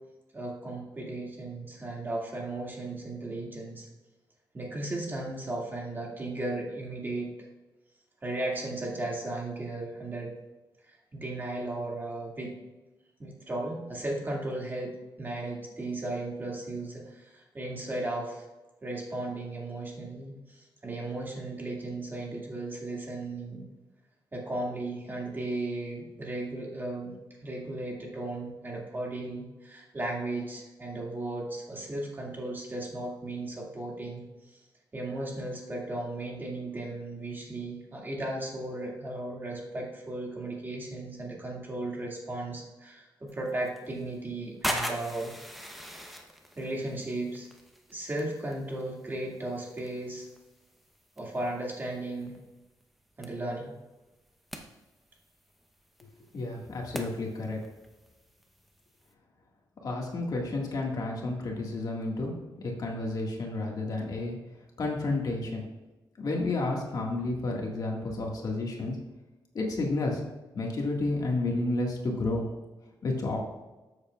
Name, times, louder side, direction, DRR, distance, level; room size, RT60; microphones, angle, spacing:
voice 1, 0.3-3.9 4.5-7.3 8.2-10.3 10.9-12.5 13.2-18.5 18.8-23.6 24.3-27.1 27.4-34.2 34.9-45.3 46.6-47.5 47.9-50.3 51.2-52.4 53.2-53.7, right 2 dB, 25° right, -2 dB, 2.2 m, -35 dB
sound 1, 43.3-59.1, equal, ahead, 0.9 m, -43 dB
voice 2, 56.3-57.6 59.8-64.4 64.8-65.7 66.2-69.0 69.5-70.2 70.6-72.5 73.0-73.4, left 2 dB, 50° left, -1 dB, 1.8 m, -31 dB
13.5 x 7.2 x 2.4 m, 1.1 s
wide cardioid pair, 140°, 8 cm